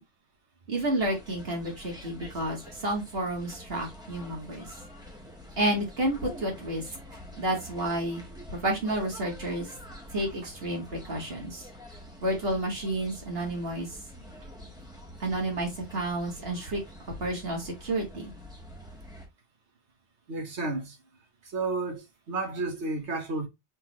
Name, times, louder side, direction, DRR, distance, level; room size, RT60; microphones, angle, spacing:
voice 1, 0.7-4.7 5.6-6.9 7.4-8.2 8.5-9.7 10.1-11.7 12.2-14.0 15.2-16.8 17.2-18.3, right 1 dB, 55° right, 2.3 m, -30 dB
sound 1, 1.0-19.3, equal, 5° right, 1.4 m, -47 dB
voice 2, 20.3-21.0 21.4-23.5, right 3 dB, 70° right, 1.5 m, -32 dB
4.3 x 3.9 x 3.0 m
omnidirectional pair, 1.2 m